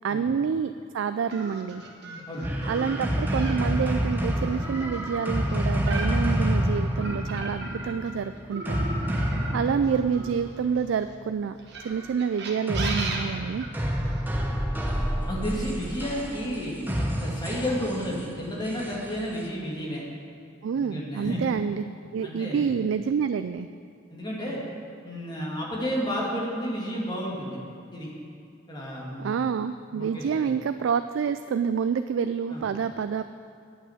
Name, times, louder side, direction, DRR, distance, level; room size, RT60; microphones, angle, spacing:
voice 1, 0.0-1.8 2.7-8.9 9.5-11.6 11.8-13.7 20.6-21.8 22.1-23.7 29.2-33.2, right 6 dB, 75° right, 10 dB, 0.3 m, -28 dB
sound 1, 1.3-8.1 8.5-10.9 11.6-14.2, right 2 dB, 55° right, 1.4 m, -37 dB
voice 2, 2.3-2.6 9.4-9.5 14.9-20.0 20.7-21.4 22.2-22.7 24.1-24.6 25.0-27.6 27.9-28.1 28.7-29.4 29.9-30.4 32.5-32.6, equal, 20° left, -4 dB, 2.2 m, -32 dB
sound 2, 2.4-10.8 12.7-19.5, equal, 10° right, 0.8 m, -28 dB
9.2 x 8.7 x 7.3 m, 2.5 s
head